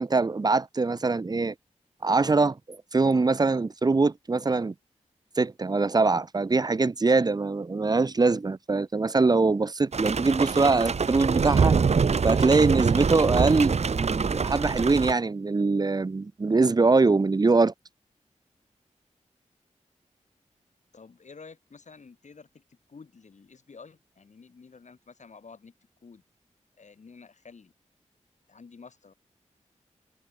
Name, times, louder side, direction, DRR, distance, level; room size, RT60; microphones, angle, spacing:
voice 1, 0.0-1.5 2.0-2.6 2.9-4.7 5.4-11.8 12.2-17.7, right 3 dB, 30° right, 0.5 m, -23 dB
sound 1, 9.9-15.1, right 5 dB, 60° right, 0.8 m, -24 dB
voice 2, 20.9-25.7 26.0-26.2 26.8-27.7 28.5-29.1, left 5 dB, 70° left, 7.8 m, -50 dB
cardioid pair, 60°, 13 cm